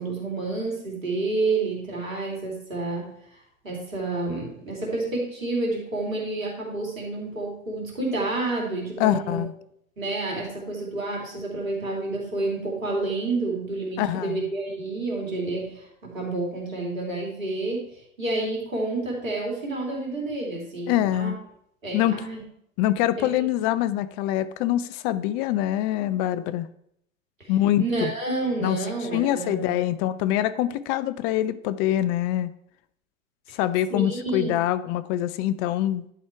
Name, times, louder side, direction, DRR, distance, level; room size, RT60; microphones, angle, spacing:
voice 1, 0.0-3.1 3.6-9.4 10.0-21.3 21.8-22.4 23.2-23.4 27.4-27.5 27.8-29.8 33.9-34.6, right 2 dB, 85° right, -1 dB, 2.8 m, -29 dB
voice 2, 9.0-9.5 14.0-14.5 20.9-21.4 21.9-22.2 22.8-26.7 27.5-28.1 28.6-28.8 29.1-32.5 33.5-36.0, left 13 dB, 35° left, 14 dB, 0.4 m, -24 dB
11.0 x 4.3 x 4.6 m, 0.72 s
hypercardioid pair, 90°, 39 cm